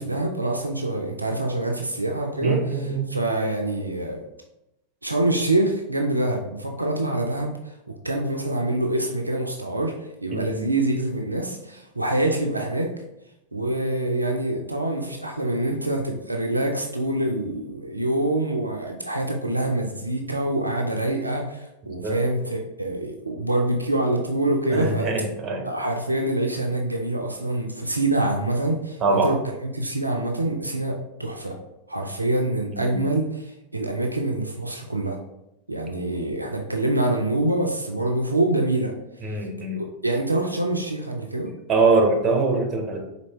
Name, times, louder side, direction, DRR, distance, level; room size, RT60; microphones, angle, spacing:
voice 1, 0.0-4.2 5.0-7.7 8.0-9.9 10.2-12.9 13.5-25.1 25.6-31.6 31.9-35.2 35.7-38.9 39.3-39.4 39.8-41.5, right 1 dB, 85° right, 2 dB, 0.4 m, -25 dB
voice 2, 2.4-3.1 10.3-10.7 22.0-22.2 24.7-25.7 29.0-29.3 32.7-33.0 39.2-39.8 41.7-43.0, right 3 dB, 25° right, 2 dB, 0.9 m, -23 dB
4.2 x 2.7 x 3.1 m, 0.88 s
figure-of-eight pair, 90°, 0 cm